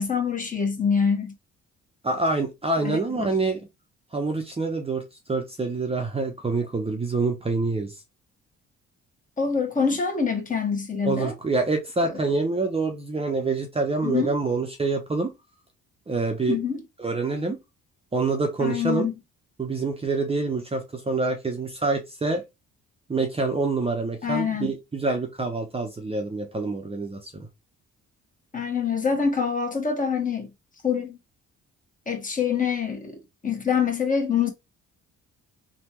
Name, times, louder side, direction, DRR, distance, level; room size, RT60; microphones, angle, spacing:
voice 1, 0.0-1.3 2.8-3.3 9.4-11.3 12.1-12.2 14.0-14.3 16.5-16.8 18.6-19.1 24.2-24.7 28.5-30.5 30.8-31.2 32.1-34.5, left 6 dB, 25° left, 1.2 m, -25 dB
voice 2, 2.0-3.6 4.1-5.0 5.3-7.9 11.0-15.3 16.1-16.6 17.0-17.6 18.1-19.1 19.6-22.4 23.1-27.5, right 3 dB, 20° right, 0.7 m, -26 dB
3.3 x 2.3 x 2.9 m
cardioid pair, 90°, 30 cm